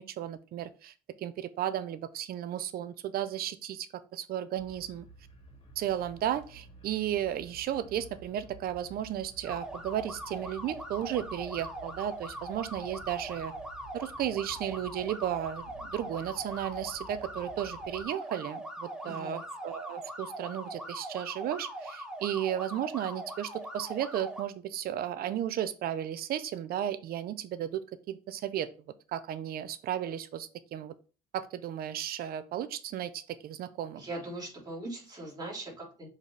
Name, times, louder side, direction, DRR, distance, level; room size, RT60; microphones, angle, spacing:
voice 1, 0.0-5.1 5.8-13.5 13.9-28.7 29.1-30.9 31.3-34.0, right 11 dB, 65° right, 13 dB, 0.6 m, -34 dB
sound 1, 4.6-18.0, right 2 dB, 35° left, 2.4 m, -52 dB
sound 2, 9.4-24.4, right 1 dB, 5° right, 1.2 m, -41 dB
voice 2, 19.0-19.4 34.0-36.1, right 2 dB, 25° right, -4 dB, 3.6 m, -40 dB
7.2 x 4.1 x 3.3 m, 0.35 s
cardioid pair, 110°, 17 cm